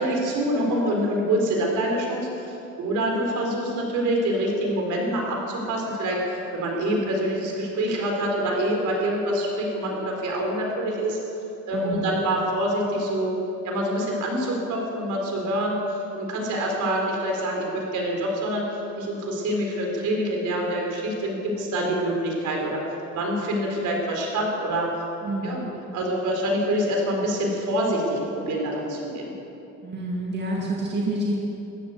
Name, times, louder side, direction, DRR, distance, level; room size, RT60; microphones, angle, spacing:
voice 1, 0.0-11.2 11.7-13.4 13.6-18.6 19.0-22.8 23.1-24.9 25.4-29.3, right 1 dB, 65° right, -1 dB, 4.3 m, -26 dB
voice 2, 11.7-12.1 25.2-25.7 29.8-31.4, right 1 dB, 35° right, -3 dB, 2.2 m, -28 dB
14.0 x 12.0 x 8.1 m, 3.0 s
cardioid pair, 125°, 32 cm